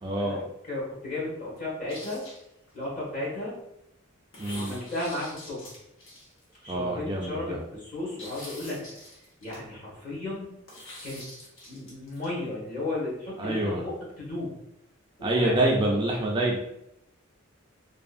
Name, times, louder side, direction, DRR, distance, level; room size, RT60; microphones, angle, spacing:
voice 1, 0.0-0.4 4.4-4.8 6.7-7.6 13.4-13.8 15.2-16.6, right 1 dB, 25° right, -1 dB, 0.3 m, -26 dB
voice 2, 0.7-2.2 2.7-3.6 4.5-5.7 6.6-8.8 9.4-10.6 11.0-11.3 11.7-14.6 15.2-15.6, left 2 dB, 40° left, -6 dB, 1.1 m, -34 dB
sound 1, 1.9-2.9 4.3-6.6 8.2-9.6 10.7-12.3, left 1 dB, 70° left, 1.0 m, -45 dB
2.7 x 2.3 x 2.5 m, 0.81 s
head